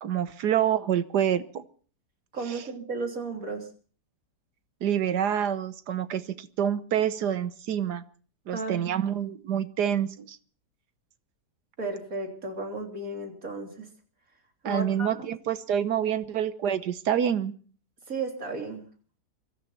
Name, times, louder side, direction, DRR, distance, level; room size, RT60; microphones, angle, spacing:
voice 1, 0.0-1.6 2.5-2.6 4.8-8.0 8.5-10.4 14.6-17.5, right 9 dB, 70° right, 12 dB, 1.5 m, -27 dB
voice 2, 2.3-3.7 8.5-8.9 11.8-13.9 14.6-15.3 18.1-18.8, right 3 dB, 50° right, 2 dB, 3.7 m, -34 dB
24.0 x 14.0 x 4.3 m, 0.42 s
omnidirectional pair, 1.9 m